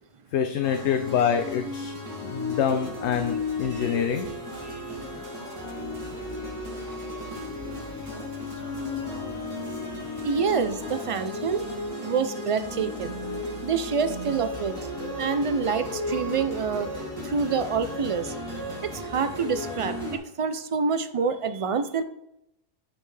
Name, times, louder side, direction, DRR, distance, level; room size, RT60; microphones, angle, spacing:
voice 1, 0.3-1.9 2.2-4.3, left 8 dB, 85° left, 6 dB, 0.9 m, -26 dB
sound 1, 0.6-20.2, left 2 dB, 25° right, 2.5 m, -34 dB
sound 2, 2.7-11.9, right 5 dB, 85° right, 1.4 m, -49 dB
sound 3, 4.1-17.0, left 1 dB, 20° left, 0.7 m, -46 dB
voice 2, 10.2-11.7 12.0-13.2 13.6-14.8 15.2-16.9 17.2-18.3 18.8-19.9 20.4-22.0, right 5 dB, 55° right, 10 dB, 0.4 m, -27 dB
9.9 x 5.5 x 3.3 m, 0.83 s
omnidirectional pair, 1.1 m